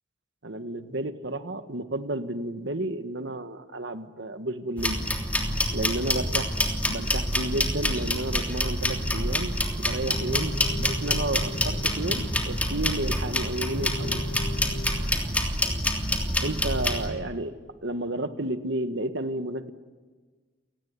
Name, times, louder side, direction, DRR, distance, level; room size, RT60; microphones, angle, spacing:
voice 1, 0.4-5.0 5.7-14.2 16.4-17.6 17.8-19.7, right 1 dB, 65° right, 9 dB, 1.6 m, -32 dB
sound 1, 4.8-17.1, left 1 dB, 10° left, 3.2 m, -27 dB
sound 2, 10.1-15.0, left 1 dB, 60° left, 2.7 m, -37 dB
29.5 x 18.5 x 9.6 m, 1.4 s
head